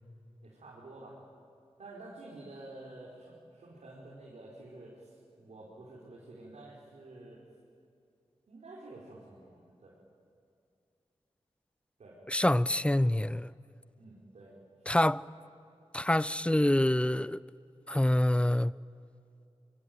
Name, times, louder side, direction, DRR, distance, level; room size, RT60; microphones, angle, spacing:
voice 1, 0.4-1.2 1.8-7.4 8.5-10.0 12.0-12.2 14.0-14.5, right 2 dB, 80° right, 5.0 m, -50 dB
voice 2, 12.3-13.5 14.9-15.2 15.9-17.4 17.9-18.7, left 1 dB, 10° left, 0.6 m, -26 dB
26.0 x 24.0 x 9.4 m
cardioid pair, 50°, 11 cm